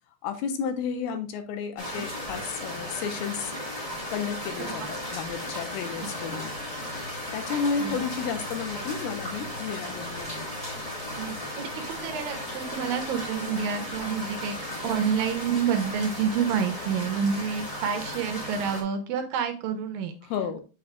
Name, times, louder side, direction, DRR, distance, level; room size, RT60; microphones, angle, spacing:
voice 1, 0.2-3.5 4.1-6.5 7.3-10.5 20.2-20.6, left 6 dB, 85° left, 7 dB, 2.7 m, -32 dB
sound 1, 1.8-18.8, left 1 dB, 30° left, 0.6 m, -35 dB
voice 2, 11.2-20.3, right 7 dB, 80° right, 7 dB, 2.3 m, -29 dB
6.8 x 6.6 x 2.3 m, 0.33 s
omnidirectional pair, 4.4 m